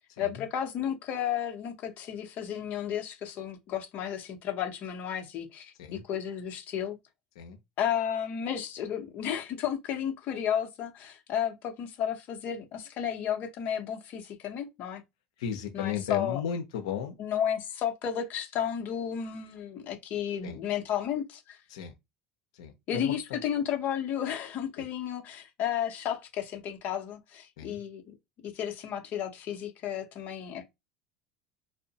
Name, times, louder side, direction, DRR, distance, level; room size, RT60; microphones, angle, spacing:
voice 1, 0.2-7.0 7.8-15.0 15.7-16.4 17.2-21.6 22.9-28.1 28.4-30.7, left 9 dB, 50° left, 0.7 m, -33 dB
voice 2, 15.4-17.2 20.4-20.6 21.7-21.9 22.6-23.1 24.8-24.9 27.6-27.8, left 8 dB, 85° left, 0.6 m, -34 dB
2.6 x 2.1 x 2.7 m
supercardioid pair, 105°, 4 cm